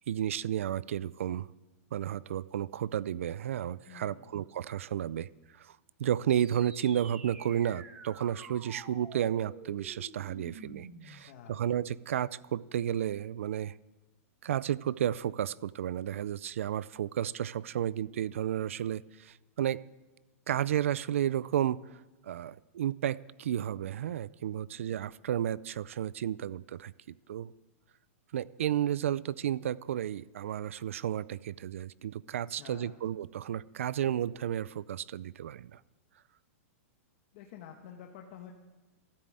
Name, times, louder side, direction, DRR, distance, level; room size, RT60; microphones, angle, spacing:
voice 1, 0.1-1.5 1.9-5.3 5.6-13.7 14.4-19.8 20.5-26.9 27.3-27.5 28.3-35.8, right 10 dB, 60° right, 20 dB, 0.4 m, -32 dB
voice 2, 3.9-4.3 11.2-11.6 24.5-24.9 32.5-33.0 37.3-38.5, left 9 dB, 30° left, 2 dB, 1.2 m, -50 dB
sound 1, 6.3-11.3, right 3 dB, 10° right, 1.1 m, -49 dB
14.0 x 13.0 x 7.7 m, 1.1 s
supercardioid pair, 180°, 8 cm